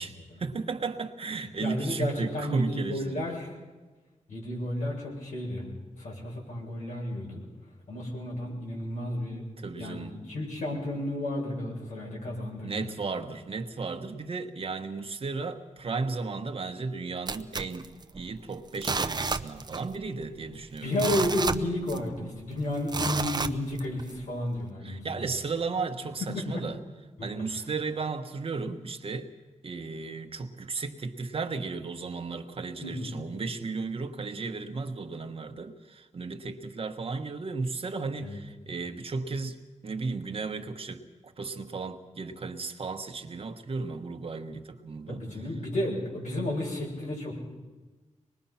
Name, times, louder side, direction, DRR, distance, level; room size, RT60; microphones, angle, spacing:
voice 1, 0.0-3.3 9.6-10.1 12.6-17.9 18.1-20.9 24.8-26.8 27.2-29.3 29.6-45.2, right 4 dB, 50° right, 6 dB, 1.3 m, -34 dB
voice 2, 1.6-3.5 4.3-5.7 6.0-7.4 7.9-9.4 9.8-12.9 20.8-25.3 26.3-26.6 27.2-27.3 32.8-33.2 38.2-38.4 45.1-47.3, left 1 dB, 80° left, -2 dB, 7.1 m, -32 dB
sound 1, 17.3-18.4 18.7-20.0 20.2-20.3 20.8-22.2 22.9-24.1 24.6-24.7, right 4 dB, 35° right, 0.7 m, -31 dB
24.5 x 20.5 x 5.8 m, 1.3 s
wide cardioid pair, 120°, 13 cm